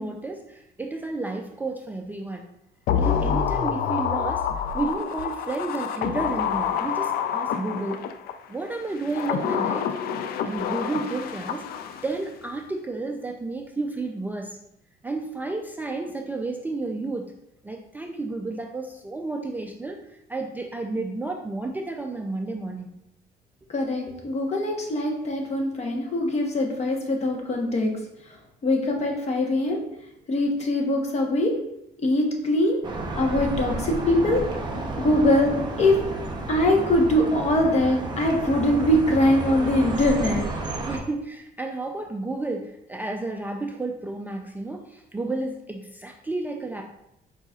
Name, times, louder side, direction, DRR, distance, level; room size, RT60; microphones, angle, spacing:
voice 1, 0.0-2.5 2.9-4.5 4.7-8.1 8.5-9.9 10.4-11.7 12.0-14.6 15.0-17.3 17.6-23.0 40.9-46.8, right 3 dB, 10° right, 2 dB, 0.3 m, -31 dB
sound 1, 2.9-8.3 9.0-12.2 12.5-12.6, left 8 dB, 65° left, 0.4 m, -27 dB
voice 2, 23.7-27.9 28.6-29.8 30.3-31.5 32.0-32.8 33.1-34.4 35.0-36.0 36.5-40.4, left 1 dB, 40° left, 1 dB, 1.0 m, -22 dB
sound 2, 32.8-41.0, right 2 dB, 25° right, 0.7 m, -31 dB
4.8 x 4.1 x 2.4 m, 0.80 s
cardioid pair, 110°, 17 cm